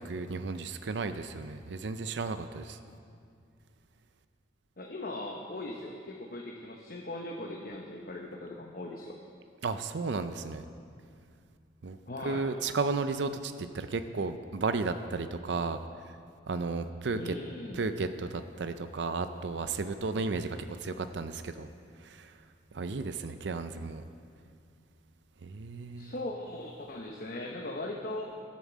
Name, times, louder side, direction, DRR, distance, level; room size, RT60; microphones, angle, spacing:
voice 1, 0.0-2.8 9.6-10.6 11.8-12.0 12.2-15.8 16.5-17.4 17.7-21.7 22.0-22.4 22.7-24.0 25.4-26.1, right 4 dB, 75° right, 10 dB, 0.5 m, -34 dB
voice 2, 4.8-9.1 12.1-12.5 17.1-17.8 26.0-28.3, left 2 dB, 50° left, -1 dB, 1.0 m, -39 dB
14.0 x 7.4 x 7.3 m, 2.3 s
head